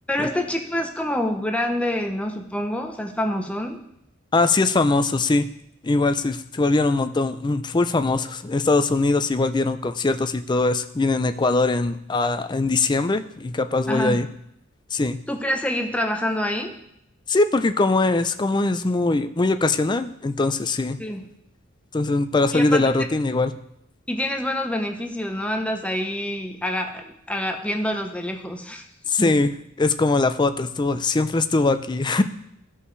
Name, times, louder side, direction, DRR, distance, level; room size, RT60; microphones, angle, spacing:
voice 1, 0.1-3.8 13.9-14.2 15.3-16.8 21.0-21.3 22.5-22.9 24.1-28.8 29.2-29.3, left 1 dB, 5° left, 3 dB, 0.8 m, -26 dB
voice 2, 4.3-5.5 5.8-14.3 14.9-15.2 17.3-21.0 21.9-23.5 29.1-29.5 29.8-32.2, left 3 dB, 20° left, 9 dB, 0.4 m, -21 dB
15.0 x 5.5 x 3.3 m, 0.75 s
head